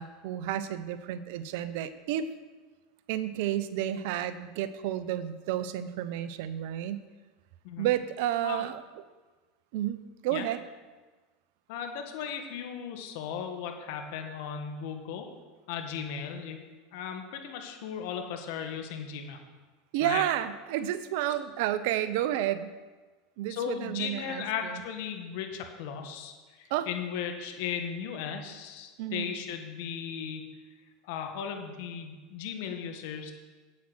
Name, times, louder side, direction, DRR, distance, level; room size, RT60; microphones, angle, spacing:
voice 1, 0.0-2.3 3.1-7.1 7.8-8.8 9.7-10.6 19.9-22.7 23.4-24.8 26.7-26.9 29.0-29.3, right 12 dB, 70° right, 13 dB, 0.7 m, -31 dB
voice 2, 11.7-15.3 15.7-16.7 16.9-19.4 20.0-20.2 23.5-30.4 31.0-33.3, left 7 dB, 70° left, 5 dB, 1.8 m, -36 dB
8.7 x 8.2 x 6.4 m, 1.3 s
hypercardioid pair, 105°, 0 cm